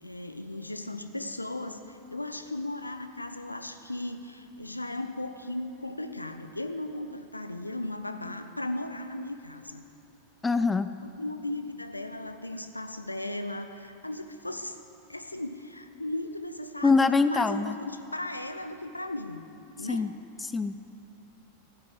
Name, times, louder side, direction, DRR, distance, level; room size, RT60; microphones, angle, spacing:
voice 1, 0.0-9.8 11.0-14.8 15.1-19.5 19.8-20.1, left 1 dB, 85° left, 8 dB, 0.7 m, -36 dB
voice 2, 10.4-10.9 16.8-17.7 19.9-20.1 20.4-20.8, left 4 dB, 10° left, 12 dB, 0.4 m, -24 dB
14.5 x 8.1 x 8.7 m, 2.8 s
figure-of-eight pair, 90°, 0 cm